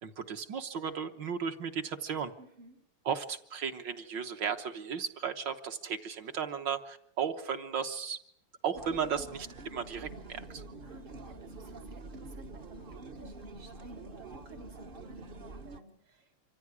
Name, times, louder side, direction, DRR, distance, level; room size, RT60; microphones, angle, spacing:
voice 1, 0.0-2.3 3.1-8.2 8.6-10.6, right 7 dB, 60° right, 6 dB, 1.7 m, -35 dB
voice 2, 2.4-2.8 10.8-16.3, right 2 dB, 75° right, 4 dB, 4.6 m, -53 dB
sound 1, 8.7-15.8, right 3 dB, 35° right, 0.9 m, -46 dB
25.5 x 15.0 x 9.7 m, 0.71 s
omnidirectional pair, 2.4 m